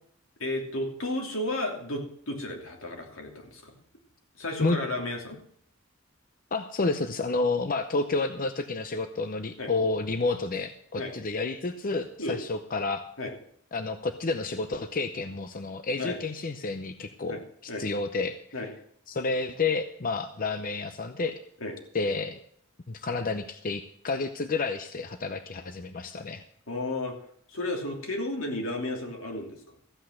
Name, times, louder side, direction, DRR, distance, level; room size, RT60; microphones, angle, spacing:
voice 1, 0.4-3.7 4.4-5.4 9.6-9.7 11.0-11.1 12.2-12.4 13.2-13.3 16.0-16.2 17.3-17.4 17.7-17.8 18.5-18.7 21.6-21.7 26.7-27.1 27.5-29.6, left 1 dB, 85° left, 1 dB, 3.0 m, -33 dB
voice 2, 6.5-13.0 13.7-18.4 19.1-21.4 21.9-22.4 22.9-26.4, left 3 dB, 45° left, 9 dB, 0.7 m, -30 dB
14.5 x 8.3 x 6.4 m, 0.66 s
head